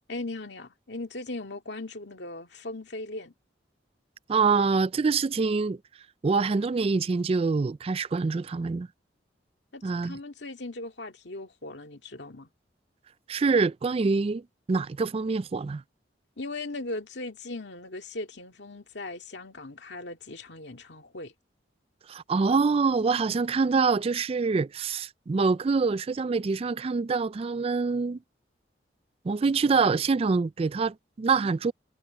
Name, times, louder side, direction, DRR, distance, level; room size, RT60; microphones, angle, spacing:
voice 1, 0.1-3.3 9.7-12.5 16.4-21.3, left 2 dB, 75° left, 2.1 m, -38 dB
voice 2, 4.3-5.8 6.2-8.9 9.8-10.2 13.3-14.4 14.7-15.8 22.1-28.2 29.2-31.7, right 4 dB, 30° right, 0.3 m, -25 dB
head